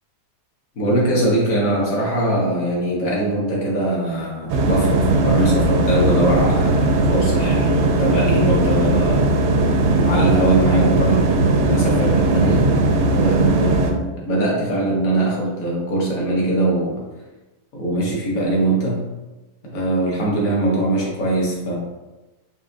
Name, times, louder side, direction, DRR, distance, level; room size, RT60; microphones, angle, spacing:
voice 1, 0.7-9.3 9.8-12.8 13.0-16.9 17.7-19.1 19.6-21.7, right 1 dB, 60° left, -4 dB, 1.6 m, -21 dB
sound 1, 4.5-13.9, right 2 dB, 65° right, 0.7 m, -18 dB
4.7 x 3.3 x 2.7 m, 1.1 s
omnidirectional pair, 1.6 m